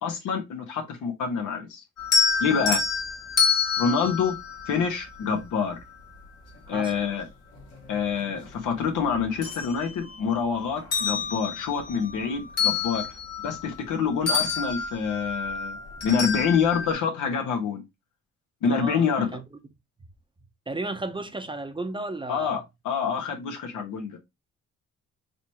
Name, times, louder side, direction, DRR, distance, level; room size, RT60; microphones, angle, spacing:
voice 1, 0.0-1.8 2.4-2.8 3.8-4.4 4.7-5.8 6.7-7.3 7.9-13.0 13.4-15.8 16.0-17.8 18.6-19.4 22.3-24.2, left 6 dB, 80° left, 1.4 m, -26 dB
sound 1, 2.0-5.3 7.0-7.1 7.6-8.8 9.2-10.4 10.8-14.0 14.3-16.9, left 5 dB, 55° left, 1.6 m, -28 dB
voice 2, 3.8-4.1 6.7-6.9 18.6-19.4 20.7-22.5, right 2 dB, 15° right, 0.7 m, -34 dB
4.0 x 3.2 x 2.9 m
cardioid pair, 90°, 30 cm